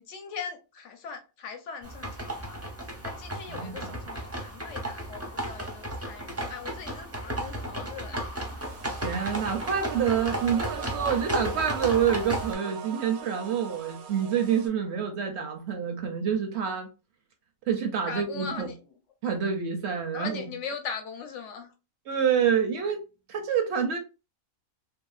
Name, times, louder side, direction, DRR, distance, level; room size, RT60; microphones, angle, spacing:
voice 1, 0.0-2.6 3.0-8.2 18.1-19.0 20.1-21.7, left 6 dB, 65° left, 0.9 m, -40 dB
sound 1, 1.8-12.6, right 1 dB, 20° right, 0.4 m, -34 dB
voice 2, 3.5-4.0 9.0-16.9 17.7-18.7 19.2-20.4 22.1-23.0 23.3-24.0, right 7 dB, 65° right, 0.7 m, -27 dB
sound 2, 8.6-14.7, right 6 dB, 85° right, 1.1 m, -40 dB
2.8 x 2.7 x 2.3 m
omnidirectional pair, 1.5 m